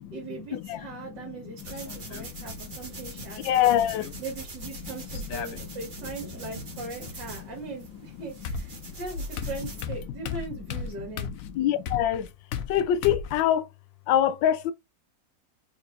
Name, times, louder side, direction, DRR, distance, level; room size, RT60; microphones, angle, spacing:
voice 1, 0.1-3.7 4.2-11.3, right 3 dB, 70° right, 2.1 m, -40 dB
sound 1, 1.6-9.8, right 2 dB, 30° right, 1.2 m, -42 dB
sound 2, 1.7-2.3 3.5-4.2 5.1-6.1 7.8-7.9 8.4-13.4, left 6 dB, 65° left, 0.8 m, -36 dB
voice 2, 3.1-4.2 6.3-6.4 7.4-7.5 8.8-8.9 11.5-12.3 12.7-13.7 14.1-14.7, left 11 dB, 85° left, 1.3 m, -24 dB
4.5 x 4.2 x 2.5 m
omnidirectional pair, 2.0 m